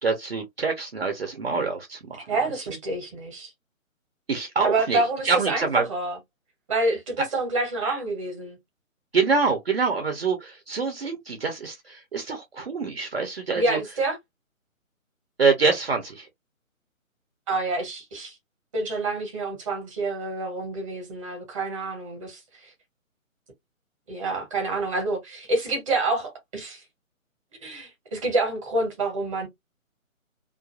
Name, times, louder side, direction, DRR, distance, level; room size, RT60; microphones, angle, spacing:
voice 1, 0.0-2.2 4.3-5.9 7.2-7.3 7.8-8.0 9.1-13.8 15.4-16.3, right 4 dB, 45° right, 0.8 m, -25 dB
voice 2, 2.3-3.5 4.6-6.2 6.7-8.6 13.5-14.2 17.5-18.4 18.7-22.7 24.1-26.8 27.5-29.5, right 2 dB, 25° right, 1.0 m, -27 dB
2.5 x 2.5 x 2.4 m
figure-of-eight pair, 145°, 42 cm